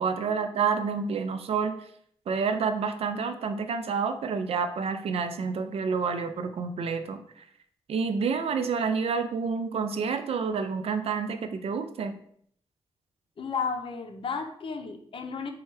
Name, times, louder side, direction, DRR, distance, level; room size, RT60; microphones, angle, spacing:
voice 1, 0.0-1.8 2.3-7.2 7.9-12.2, right 5 dB, 80° right, 8 dB, 0.5 m, -29 dB
voice 2, 13.4-15.5, left 5 dB, 60° left, 6 dB, 0.6 m, -33 dB
4.3 x 2.3 x 4.6 m, 0.63 s
wide cardioid pair, 90°, 10 cm